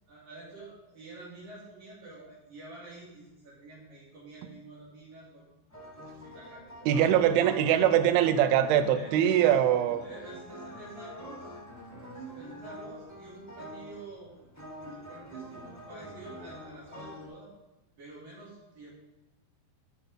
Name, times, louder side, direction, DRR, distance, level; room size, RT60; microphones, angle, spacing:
voice 1, 0.1-5.4 5.8-7.5 8.9-9.5 10.0-11.6 12.1-14.4 14.8-17.5 18.0-18.9, right 2 dB, 55° right, -9 dB, 4.3 m, -48 dB
sound 1, 5.7-17.3, equal, 10° left, 1.1 m, -45 dB
voice 2, 6.9-10.0, right 10 dB, 80° right, 8 dB, 2.3 m, -23 dB
12.5 x 5.2 x 5.1 m, 1.0 s
omnidirectional pair, 4.8 m